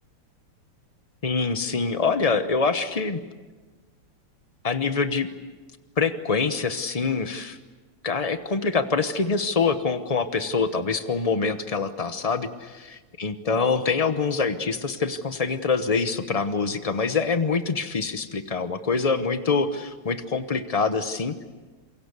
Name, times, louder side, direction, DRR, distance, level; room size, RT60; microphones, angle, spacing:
voice 1, 1.2-3.2 4.6-5.3 6.0-7.6 8.0-21.4, left 4 dB, 75° left, 10 dB, 0.3 m, -25 dB
27.5 x 23.5 x 8.2 m, 1.3 s
omnidirectional pair, 2.3 m